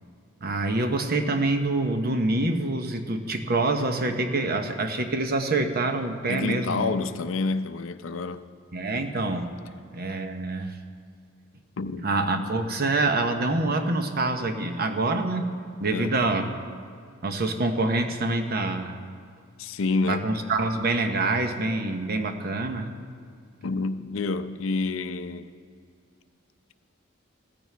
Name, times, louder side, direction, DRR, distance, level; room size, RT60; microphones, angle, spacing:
voice 1, 0.4-6.9 8.7-9.5 9.9-10.8 12.0-15.5 15.8-16.5 17.2-19.0 20.1-22.9, right 2 dB, 50° right, 0.9 m, -26 dB
voice 2, 6.3-8.4 11.8-12.1 15.9-16.1 19.6-20.4 23.6-25.5, left 3 dB, 70° left, 0.5 m, -28 dB
15.5 x 14.0 x 3.4 m
head